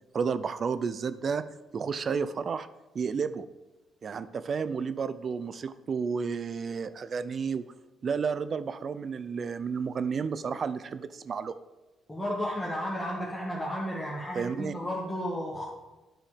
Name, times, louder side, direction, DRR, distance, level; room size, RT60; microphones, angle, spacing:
voice 1, 0.1-1.4 1.7-2.7 2.9-3.4 4.0-7.7 8.0-11.5 14.3-14.7, right 5 dB, 50° right, 14 dB, 0.4 m, -31 dB
voice 2, 12.1-15.6, equal, 15° left, -4 dB, 1.5 m, -33 dB
9.1 x 4.9 x 5.0 m, 1.1 s
cardioid pair, 90°, 0 cm